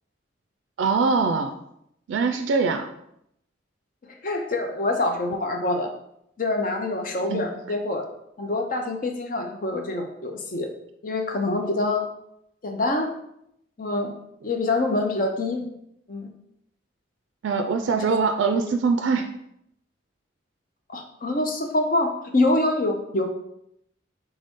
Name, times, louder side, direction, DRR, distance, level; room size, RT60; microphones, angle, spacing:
voice 1, 0.8-1.5 2.1-2.9 7.3-7.5 17.4-19.3, right 4 dB, 75° right, 6 dB, 0.3 m, -23 dB
voice 2, 4.2-5.9 6.4-8.1 8.4-10.7 11.0-12.0 12.6-13.2 13.8-14.2 14.4-15.6 16.1-16.3 18.0-18.1 20.9-23.3, left 2 dB, 45° left, 4 dB, 0.6 m, -25 dB
4.0 x 3.4 x 3.5 m, 0.77 s
head